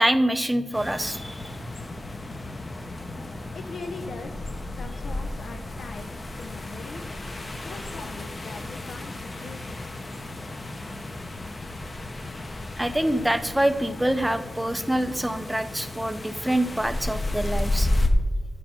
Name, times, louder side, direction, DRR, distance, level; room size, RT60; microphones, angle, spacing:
voice 1, 0.0-1.5 12.8-17.9, right 1 dB, 5° right, 10 dB, 0.5 m, -25 dB
sound 1, 0.7-18.1, left 2 dB, 30° left, 0.7 m, -33 dB
voice 2, 3.5-7.1 7.6-9.9, left 4 dB, 65° left, 5 dB, 0.5 m, -41 dB
10.5 x 5.0 x 5.7 m, 1.3 s
wide cardioid pair, 140°, 0 cm